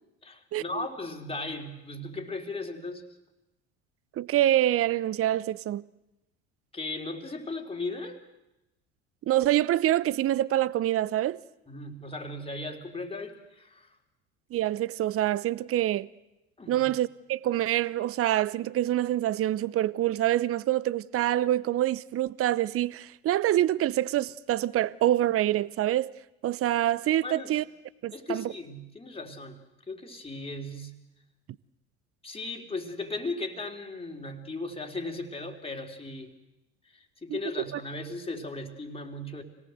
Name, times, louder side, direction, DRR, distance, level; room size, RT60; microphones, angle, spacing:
voice 1, 0.2-3.0 6.7-8.2 11.7-14.0 16.6-16.9 27.2-27.6 28.1-29.6 29.9-30.9 32.2-36.3 36.9-39.4, left 2 dB, 15° left, 3.7 m, -37 dB
voice 2, 4.2-5.8 9.3-11.4 14.5-16.1 16.7-26.1 26.4-27.6 28.0-28.5 37.3-37.4, right 13 dB, 40° right, 0.8 m, -26 dB
26.0 x 18.5 x 7.9 m
hypercardioid pair, 70°, 34 cm